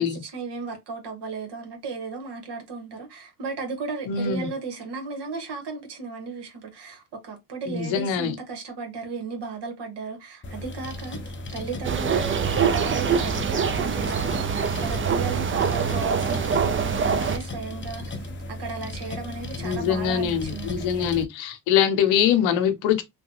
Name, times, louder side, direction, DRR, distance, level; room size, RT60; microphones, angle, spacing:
voice 1, 0.0-21.0, right 4 dB, 60° right, 1.4 m, -35 dB
voice 2, 4.1-4.5 7.7-8.3 19.5-23.0, left 8 dB, 75° left, 0.8 m, -23 dB
sound 1, 10.4-21.2, left 1 dB, 25° left, 0.7 m, -36 dB
sound 2, 11.8-17.4, right 6 dB, 25° right, 0.6 m, -24 dB
3.2 x 2.2 x 3.0 m
supercardioid pair, 65°, 46 cm